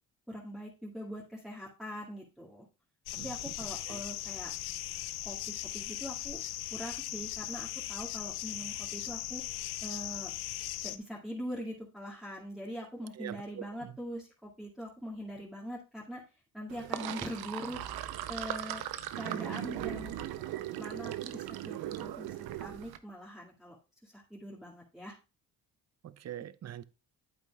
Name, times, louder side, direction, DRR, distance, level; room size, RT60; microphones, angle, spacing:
voice 1, 0.3-2.6 3.2-4.5 5.2-5.4 5.7-6.4 6.7-9.4 9.8-10.3 10.8-16.2 16.5-17.8 18.3-18.8 19.2-20.2 20.8-23.8 24.0-25.1, equal, ahead, 2.2 m, -42 dB
sound 1, 3.1-11.0, left 14 dB, 80° left, 0.6 m, -39 dB
voice 2, 13.2-14.0 26.0-26.8, right 11 dB, 45° right, 0.6 m, -44 dB
Sink (filling or washing), 16.7-23.0, right 12 dB, 75° right, 0.8 m, -38 dB
8.9 x 8.1 x 2.4 m
supercardioid pair, 60°, 38 cm